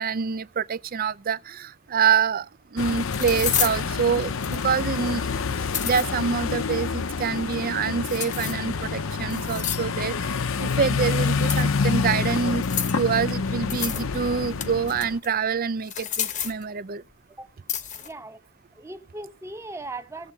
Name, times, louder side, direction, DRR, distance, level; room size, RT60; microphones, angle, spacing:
voice 1, 0.0-2.4 2.7-5.4 5.8-10.1 10.6-12.6 13.0-17.0, right 6 dB, 40° right, 0.5 m, -26 dB
sound 1, 2.2-2.3 3.1-3.8 4.4-4.8 5.5-6.1 8.0-8.7 9.3-10.0 11.4-11.9 12.6-13.0 13.7-14.1 14.4-15.3 15.8-16.6 17.7-18.1, left 9 dB, 35° left, 0.9 m, -30 dB
sound 2, 2.8-15.2, left 5 dB, 65° left, 0.7 m, -27 dB
voice 2, 18.0-18.4 18.7-20.3, right 2 dB, 15° right, 0.9 m, -38 dB
18.5 x 7.5 x 2.8 m
head